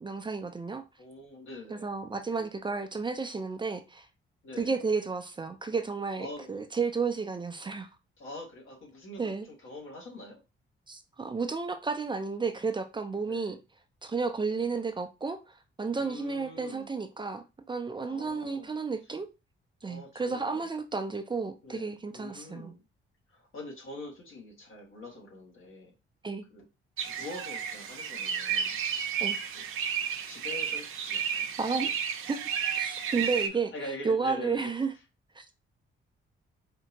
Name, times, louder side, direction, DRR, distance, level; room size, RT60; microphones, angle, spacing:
voice 1, 0.0-0.8 1.7-4.1 4.6-7.9 9.2-9.5 10.9-13.6 14.0-15.4 15.8-19.3 19.8-22.7 26.2-26.4 29.2-29.4 31.6-31.9 32.3-32.4 32.7-33.7 34.0-34.9 35.4-35.5, right 4 dB, 20° right, 0.5 m, -32 dB
voice 2, 1.0-1.9 2.3-2.4 4.4-4.8 6.2-6.5 8.2-10.4 13.2-13.6 14.5-14.7 15.9-16.9 18.0-18.7 19.8-20.7 21.6-22.8 23.3-25.9 26.5-26.7 27.1-28.8 29.5-29.6 30.3-31.9 33.2-34.8, left 2 dB, 75° left, 1.9 m, -44 dB
sound 1, 27.0-33.5, right 7 dB, 80° right, 0.6 m, -32 dB
4.4 x 2.8 x 2.8 m
cardioid pair, 110°, 21 cm